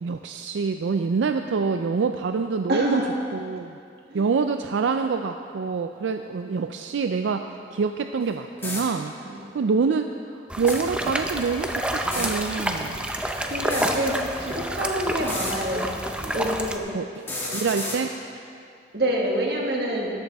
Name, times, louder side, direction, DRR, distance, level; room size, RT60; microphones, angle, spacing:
voice 1, 0.0-3.0 3.3-3.8 4.1-9.1 9.5-10.1 10.6-13.0 16.9-17.3 17.5-18.1, right 5 dB, 90° right, 7 dB, 0.4 m, -26 dB
voice 2, 2.7-3.1 4.1-4.2 9.3-9.4 13.4-16.8 18.9-20.1, right 1 dB, 60° right, -1 dB, 1.7 m, -27 dB
sound 1, 8.2-8.3 8.6-8.8 10.5-10.8 12.0-12.3 13.6-13.9 15.2-15.5 17.2-18.0, left 2 dB, 10° left, 1.8 m, -31 dB
sound 2, 10.5-16.8, right 1 dB, 5° right, 0.5 m, -29 dB
13.5 x 12.5 x 3.5 m, 2.4 s
head